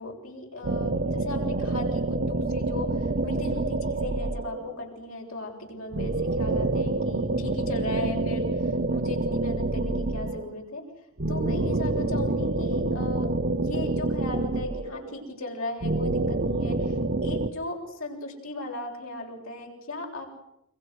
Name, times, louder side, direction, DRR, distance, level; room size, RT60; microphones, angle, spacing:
voice 1, 0.0-10.8 11.3-13.3 13.6-20.4, left 2 dB, 85° left, 1 dB, 7.4 m, -37 dB
sound 1, 0.6-4.8 5.9-10.6 11.2-15.2 15.8-17.5, right 2 dB, 50° right, 1.1 m, -27 dB
30.0 x 24.5 x 6.4 m, 0.82 s
head